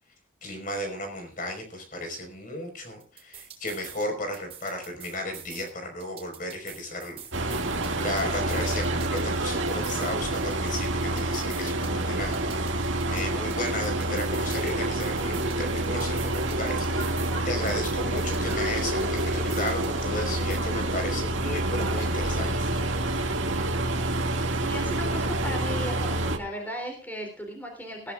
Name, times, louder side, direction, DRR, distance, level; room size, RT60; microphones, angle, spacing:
voice 1, 0.4-22.9, left 1 dB, 45° left, 4 dB, 5.2 m, -34 dB
sound 1, 3.0-4.1 4.3-5.7 6.0-9.4 9.7-12.0 12.3-14.7 15.0-17.4 17.7-20.0 20.3-20.6, right 9 dB, 30° right, 4.6 m, -46 dB
sound 2, 7.3-26.4, right 2 dB, 90° right, 2.3 m, -28 dB
voice 2, 24.5-28.1, equal, 10° left, 1 dB, 3.3 m, -36 dB
20.5 x 15.0 x 2.5 m, 0.35 s
head